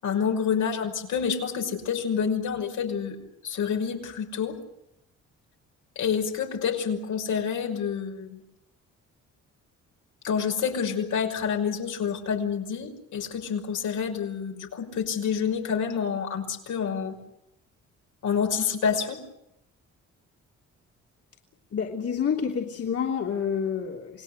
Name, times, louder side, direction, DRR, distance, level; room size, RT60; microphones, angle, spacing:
voice 1, 0.0-3.2 3.4-4.6 6.0-8.4 10.2-17.2 18.2-19.2, left 7 dB, 75° left, 3 dB, 5.7 m, -28 dB
voice 2, 21.7-24.2, left 7 dB, 50° left, -1 dB, 3.3 m, -28 dB
28.5 x 19.0 x 8.3 m, 0.83 s
cardioid pair, 90°, 30 cm